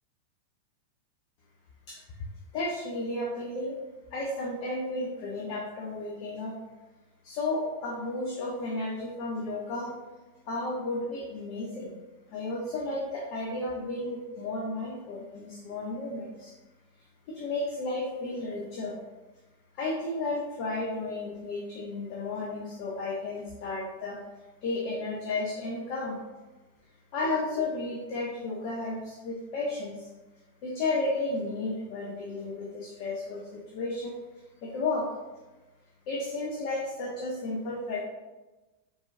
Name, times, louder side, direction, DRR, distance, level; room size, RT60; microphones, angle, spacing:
voice 1, 1.9-2.3 2.5-3.8 4.1-6.5 7.2-9.9 10.4-11.9 12.3-16.5 17.3-19.0 19.7-24.2 24.6-26.2 27.1-30.1 30.6-34.2 34.6-35.1 36.1-38.0, left 2 dB, 45° left, -3 dB, 0.8 m, -33 dB
4.4 x 3.9 x 2.6 m, 1.1 s
figure-of-eight pair, 90°, 0 cm